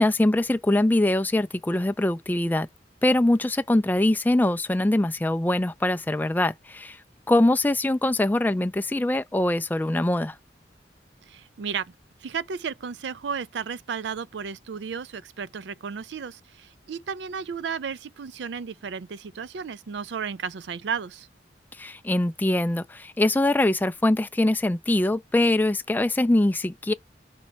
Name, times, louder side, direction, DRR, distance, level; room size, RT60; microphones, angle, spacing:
voice 1, 0.0-2.7 3.0-7.0 7.3-10.3 21.8-26.9, left 1 dB, 10° left, 0.3 m, -23 dB
voice 2, 11.3-11.9 12.2-21.3, right 6 dB, 70° right, 0.4 m, -33 dB
5.3 x 4.1 x 4.5 m
head